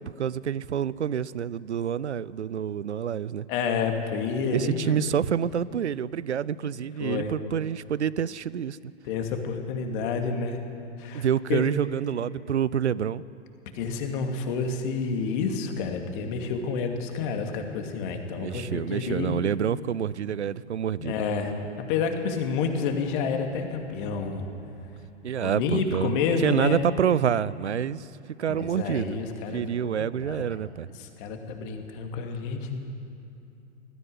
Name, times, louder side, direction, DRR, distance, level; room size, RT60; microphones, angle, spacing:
voice 1, 0.0-3.5 4.5-8.8 11.1-13.2 18.4-21.1 25.2-26.1 26.4-28.1 28.4-29.2 29.5-30.9, right 8 dB, 75° right, 20 dB, 0.6 m, -27 dB
voice 2, 3.5-5.0 7.0-7.3 9.0-10.6 11.0-11.7 13.7-19.4 21.0-21.5 21.9-24.5 25.4-26.8 28.5-30.5 30.9-32.9, left 5 dB, 45° left, 4 dB, 2.5 m, -29 dB
19.5 x 14.5 x 9.7 m, 2.7 s
figure-of-eight pair, 95°, 34 cm